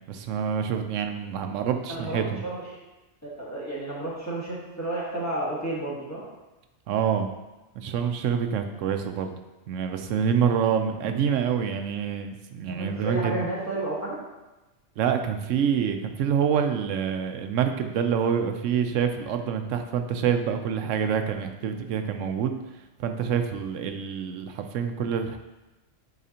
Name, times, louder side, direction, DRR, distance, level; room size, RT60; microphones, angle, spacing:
voice 1, 0.1-2.4 6.9-7.3 7.8-9.4 9.7-13.4 15.0-22.5 23.0-25.4, right 7 dB, 90° right, 6 dB, 0.9 m, -26 dB
voice 2, 1.9-2.6 3.2-6.2 12.7-14.2, right 2 dB, 15° left, -7 dB, 1.4 m, -31 dB
8.5 x 4.1 x 2.8 m, 1.1 s
omnidirectional pair, 1.3 m